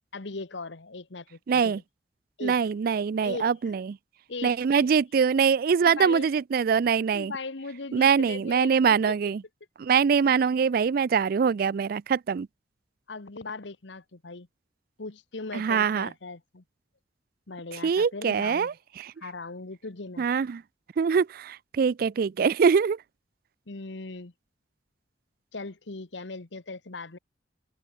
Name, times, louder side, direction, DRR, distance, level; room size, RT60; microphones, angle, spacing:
voice 1, 0.1-1.7 2.4-2.6 3.2-3.5 4.3-4.6 5.9-6.3 7.1-8.9 13.1-14.5 15.0-16.6 17.5-18.7 19.2-20.3 23.7-24.3 25.5-27.2, left 3 dB, 80° left, 1.3 m, -38 dB
voice 2, 1.5-1.8 2.4-4.0 4.4-7.3 7.9-9.4 9.8-12.5 15.5-16.1 17.7-19.1 20.2-20.6 21.0-23.0, right 6 dB, 55° right, 0.3 m, -23 dB
head